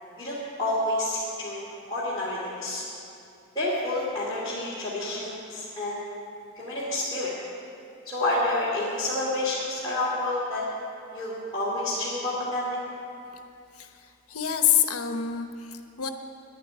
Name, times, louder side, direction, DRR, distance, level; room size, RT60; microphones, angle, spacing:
voice 1, 0.2-2.8 3.5-6.0 6.5-7.3 8.0-10.6 11.1-12.8, left 1 dB, 20° left, -10 dB, 2.7 m, -29 dB
voice 2, 13.7-16.1, left 9 dB, 85° left, 7 dB, 1.0 m, -27 dB
11.0 x 9.1 x 10.0 m, 2.5 s
head